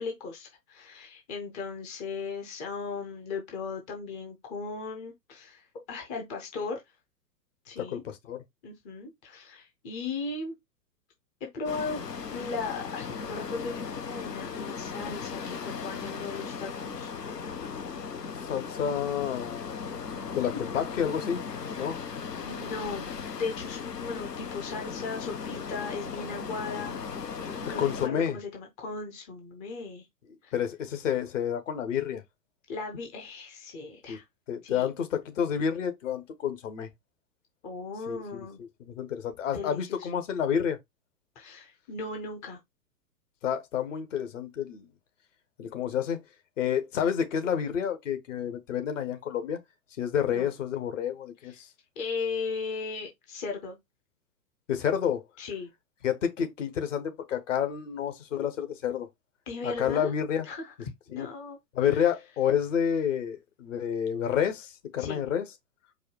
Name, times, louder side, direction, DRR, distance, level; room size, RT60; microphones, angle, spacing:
voice 1, 0.0-6.8 7.6-8.0 8.6-10.5 11.4-12.0 12.3-17.1 20.5-20.8 21.6-22.0 22.4-23.1 23.4-27.0 27.4-30.1 30.4-30.5 32.7-34.2 34.6-34.9 37.6-38.6 39.5-40.1 41.4-42.6 50.2-50.5 51.5-51.6 52.0-53.8 55.4-55.7 59.5-60.1 60.4-60.7 61.1-62.1 65.0-65.2, left 4 dB, 15° left, 0.6 m, -37 dB
voice 2, 7.8-8.4 18.5-19.8 20.3-21.4 21.8-22.0 27.8-28.4 30.5-32.2 34.1-34.2 34.5-36.9 38.1-38.4 38.8-40.8 43.4-44.9 45.6-46.2 46.6-49.6 50.0-51.7 54.7-55.2 56.0-59.1 59.6-60.5 61.1-61.3 61.7-65.4, left 8 dB, 50° left, 1.2 m, -29 dB
sound 1, 11.7-28.1, left 6 dB, 75° left, 0.9 m, -37 dB
4.7 x 2.2 x 4.6 m
figure-of-eight pair, 110°, 49 cm